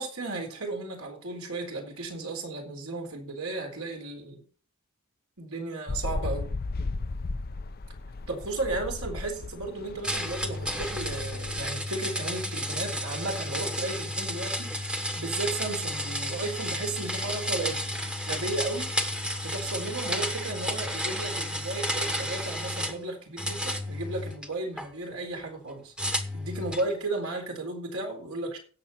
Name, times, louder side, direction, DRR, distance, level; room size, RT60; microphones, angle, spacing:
voice 1, 0.0-4.4 5.4-6.5 8.3-17.8 18.3-18.9 19.4-25.9 26.3-28.6, right 2 dB, 75° right, 2 dB, 3.9 m, -34 dB
sound 1, 5.9-11.7, left 3 dB, 45° left, 0.6 m, -35 dB
sound 2, 10.0-23.0 23.4-24.9 26.0-26.9, equal, 5° right, 1.1 m, -32 dB
16.5 x 7.4 x 4.2 m, 0.41 s
head